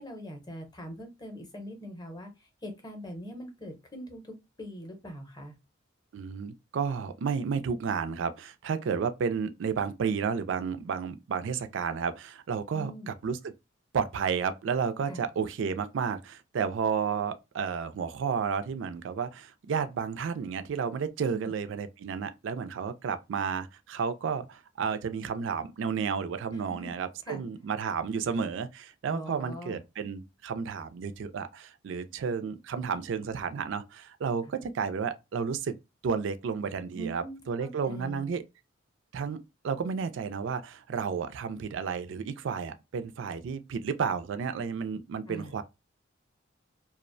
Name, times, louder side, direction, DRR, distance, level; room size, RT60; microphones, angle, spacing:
voice 1, 0.0-2.3 2.6-5.6 12.7-13.1 15.1-15.2 21.3-21.5 26.5-26.9 27.3-27.4 29.1-29.8 36.9-38.3 45.3-45.5, equal, 20° left, 0.7 m, -42 dB
voice 2, 6.1-13.5 13.9-35.7 36.0-38.4 39.1-39.4 39.6-45.6, right 6 dB, 65° right, 0.3 m, -32 dB
2.4 x 2.1 x 2.5 m
head